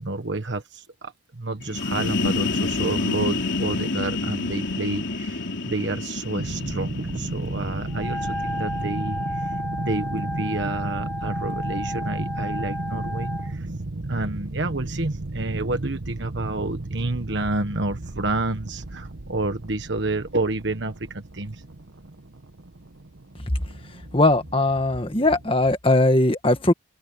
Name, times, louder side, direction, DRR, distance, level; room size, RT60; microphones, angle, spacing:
voice 1, 0.0-13.7 14.1-21.6, right 2 dB, 65° right, 1.4 m, -29 dB
sound 1, 1.6-9.2, left 3 dB, 65° left, 3.7 m, -29 dB
sound 2, 6.4-25.5, right 2 dB, 80° right, 1.3 m, -34 dB
Wind instrument woodwind instrument, 7.9-13.5, left 1 dB, 5° left, 7.4 m, -32 dB
voice 2, 24.1-26.7, left 2 dB, 25° left, 1.7 m, -19 dB
open air
head